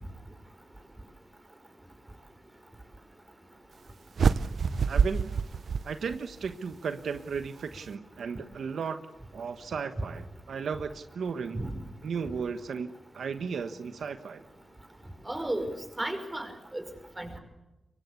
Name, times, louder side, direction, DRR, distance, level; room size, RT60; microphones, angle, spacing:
sound 1, 4.2-6.5, right 6 dB, 70° right, 0.8 m, -27 dB
voice 1, 4.9-5.4 5.8-9.0 9.3-11.6 12.0-14.4, right 6 dB, 90° right, 9 dB, 1.3 m, -35 dB
voice 2, 15.3-15.7 16.0-16.8 17.2-17.4, right 1 dB, 15° right, 6 dB, 5.5 m, -33 dB
24.0 x 23.0 x 8.5 m, 0.98 s
wide cardioid pair, 100°, 0 cm